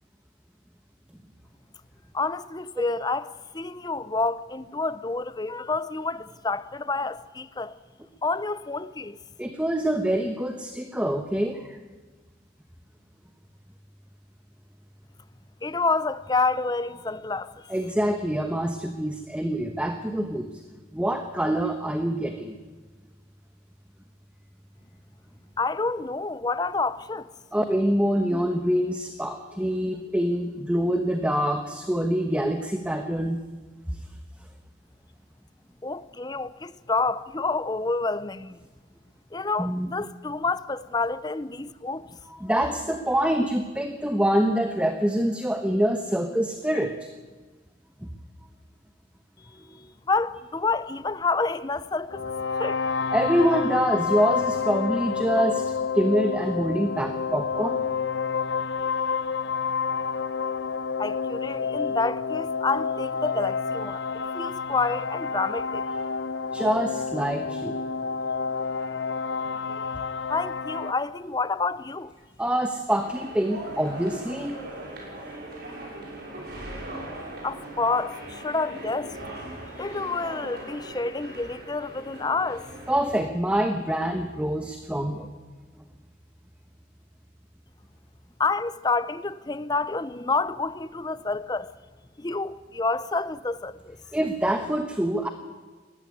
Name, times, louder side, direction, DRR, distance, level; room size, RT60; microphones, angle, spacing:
voice 1, 2.1-3.3 3.5-7.7 8.2-9.2 15.6-17.7 25.6-27.3 35.8-38.6 39.3-42.1 49.5-52.2 52.6-53.1 61.0-65.8 70.3-72.1 77.4-79.4 79.8-82.6 88.4-91.7 92.2-94.0, left 3 dB, 20° left, 0.6 m, -28 dB
voice 2, 9.4-11.8 17.7-20.6 20.9-22.5 27.5-33.4 33.9-34.0 39.6-39.9 42.3-47.1 48.0-48.1 53.1-57.9 66.5-67.8 69.8-69.9 72.4-74.6 82.9-85.3 94.1-95.3, equal, 5° right, 1.1 m, -25 dB
sound 1, 52.1-70.9, left 5 dB, 70° left, 0.8 m, -29 dB
sound 2, 73.0-83.1, right 1 dB, 55° right, 6.2 m, -40 dB
19.5 x 15.0 x 9.5 m
head